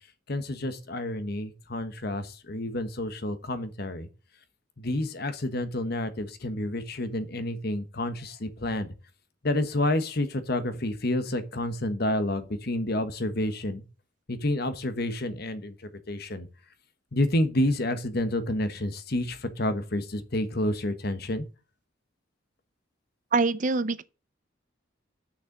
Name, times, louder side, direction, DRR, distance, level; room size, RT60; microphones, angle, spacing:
voice 1, 0.3-4.1 4.8-8.9 9.4-13.8 14.3-16.5 17.1-21.4, left 1 dB, 50° left, 1.2 m, -29 dB
voice 2, 23.3-24.0, right 3 dB, 40° right, 0.5 m, -24 dB
6.6 x 6.5 x 7.5 m
head